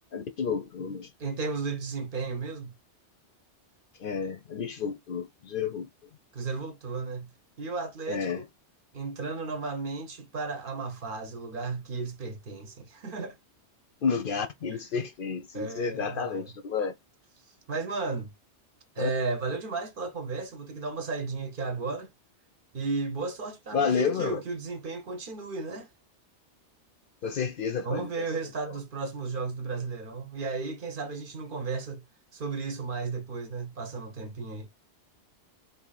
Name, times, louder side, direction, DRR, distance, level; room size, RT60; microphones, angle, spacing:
voice 1, 0.0-1.1 4.0-5.9 8.1-8.4 14.0-16.9 19.0-19.1 23.7-24.4 27.2-28.3 28.7-28.8, left 6 dB, 60° left, 0.7 m, -30 dB
voice 2, 1.2-2.7 6.3-7.3 7.6-8.5 8.9-13.4 15.5-16.5 17.7-18.3 19.0-22.1 22.7-25.9 27.8-32.0 32.3-34.7, right 4 dB, 55° right, 0.8 m, -34 dB
2.8 x 2.6 x 3.8 m
omnidirectional pair, 1.2 m